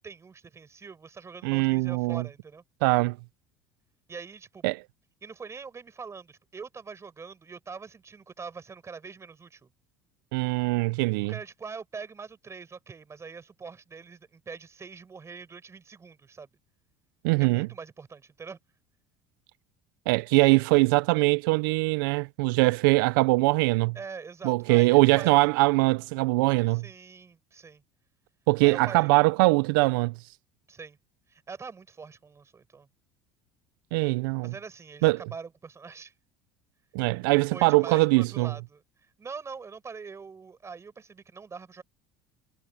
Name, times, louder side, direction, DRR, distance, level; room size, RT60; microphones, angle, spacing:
voice 1, 0.0-2.6 4.1-4.7 5.2-9.7 11.3-16.5 17.4-18.6 23.9-25.5 26.7-27.8 28.6-29.1 30.7-31.0 31.3-32.9 34.4-36.1 37.5-38.8 39.2-41.8, right 5 dB, 25° right, 6.0 m, -43 dB
voice 2, 1.4-2.2 2.8-3.2 4.6-4.8 10.3-11.3 17.2-17.7 20.1-23.9 24.4-26.8 28.5-30.1 33.9-34.5 35.0-35.2 36.9-38.5, right 25 dB, 85° right, 0.4 m, -22 dB
supercardioid pair, 100°, 11 cm